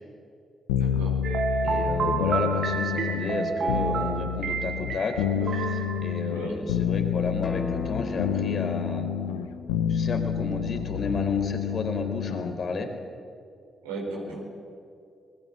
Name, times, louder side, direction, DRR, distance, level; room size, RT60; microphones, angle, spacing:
sound 1, 0.7-12.6, left 9 dB, 90° left, 1.0 m, -29 dB
voice 1, 0.8-1.1 6.3-6.6 13.8-14.4, right 3 dB, 90° right, -2 dB, 5.3 m, -35 dB
sound 2, 1.2-6.6, right 5 dB, 60° right, 2.3 m, -30 dB
voice 2, 1.6-9.1 9.9-12.9 14.3-14.4, left 3 dB, 55° left, 6 dB, 4.2 m, -32 dB
Acoustic guitar, 7.4-12.6, left 4 dB, 40° left, 2.5 m, -39 dB
27.5 x 21.0 x 7.7 m, 2.5 s
hypercardioid pair, 45°, 0 cm